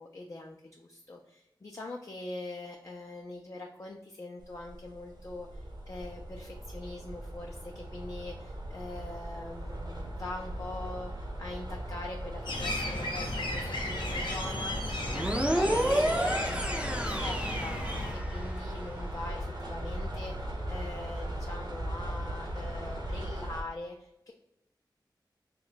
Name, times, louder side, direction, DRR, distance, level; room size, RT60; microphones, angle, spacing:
voice 1, 0.0-24.3, left 2 dB, 40° left, 1 dB, 0.4 m, -43 dB
sound 1, 4.4-23.6, equal, 60° right, 0.9 m, -38 dB
sound 2, 12.5-18.1, left 1 dB, 75° left, 0.7 m, -36 dB
sound 3, 15.1-18.6, right 1 dB, 15° right, 0.5 m, -30 dB
2.9 x 2.2 x 3.9 m, 0.86 s
wide cardioid pair, 70°, 8 cm